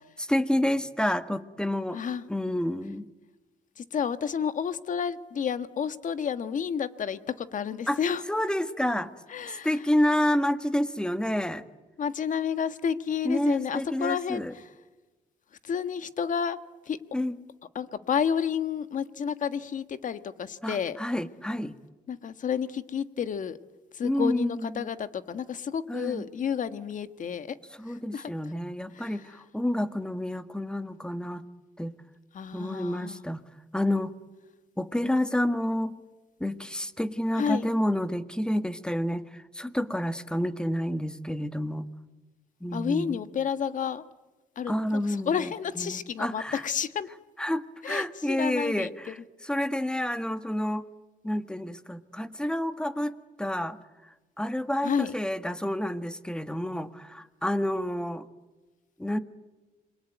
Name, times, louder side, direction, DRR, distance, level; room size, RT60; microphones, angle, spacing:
voice 1, 0.3-2.0 2.3-3.1 7.9-8.0 8.3-9.1 9.5-11.6 13.2-14.5 17.1-17.3 20.6-21.7 24.0-24.9 25.9-26.3 27.8-31.5 31.8-31.9 32.5-33.4 33.7-34.1 34.8-36.0 36.4-41.9 42.6-43.2 44.7-46.6 47.4-50.8 51.2-53.8 54.4-58.3 59.0-59.2, left 1 dB, 5° left, 10 dB, 1.6 m, -29 dB
voice 2, 1.9-2.2 3.8-8.2 9.3-9.7 12.0-14.7 15.6-16.6 16.9-17.0 17.7-21.0 22.1-23.6 23.9-27.5 27.9-28.3 28.9-29.2 32.3-33.2 37.4-37.7 42.7-44.0 44.6-47.1 47.8-48.9 54.8-55.1, left 7 dB, 55° left, 11 dB, 1.5 m, -30 dB
27.5 x 23.0 x 9.3 m, 1.2 s
cardioid pair, 95°, 16 cm